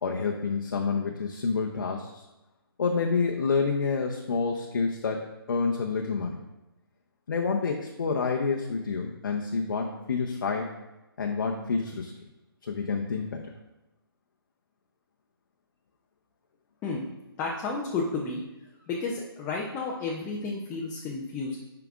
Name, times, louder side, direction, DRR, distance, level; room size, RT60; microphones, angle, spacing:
voice 1, 0.0-2.2 2.8-6.4 7.3-10.7 11.2-12.1 12.6-13.4, left 4 dB, 55° left, 1 dB, 0.8 m, -28 dB
voice 2, 17.4-18.4 18.9-21.6, left 3 dB, 15° left, -3 dB, 0.6 m, -32 dB
8.9 x 5.8 x 2.4 m, 0.99 s
figure-of-eight pair, 145°, 13 cm